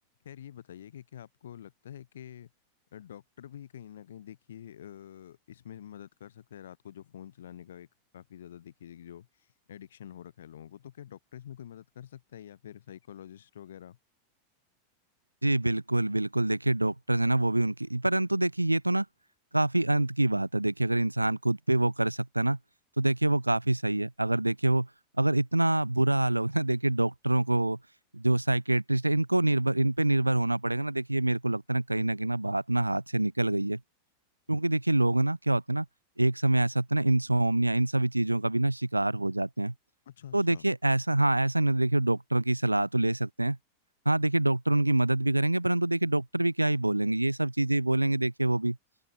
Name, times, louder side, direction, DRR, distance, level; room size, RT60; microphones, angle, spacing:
voice 1, 0.2-2.5 2.9-7.9 8.1-14.0 40.1-40.7, left 10 dB, 60° left, 2.7 m, -47 dB
voice 2, 15.4-19.1 19.5-22.6 23.0-24.9 25.2-27.8 28.1-33.8 34.5-35.9 36.2-39.7 40.3-43.6 44.1-48.8, right 1 dB, 85° right, 0.6 m, -26 dB
open air
figure-of-eight pair, 90°, 0 cm